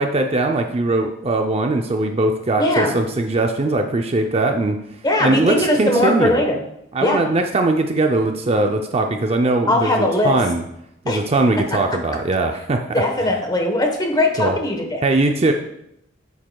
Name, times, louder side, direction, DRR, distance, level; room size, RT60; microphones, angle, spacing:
voice 1, 0.0-4.8 5.2-6.4 6.9-10.6 11.0-13.0 14.4-14.6 15.0-15.5, right 2 dB, 30° right, 4 dB, 0.5 m, -20 dB
voice 2, 2.6-3.0 5.0-6.6 7.0-7.2 9.7-10.4 11.1-11.2 12.1-12.2 12.9-15.0, left 1 dB, 20° left, 3 dB, 1.1 m, -19 dB
9.3 x 7.5 x 2.3 m, 0.79 s
head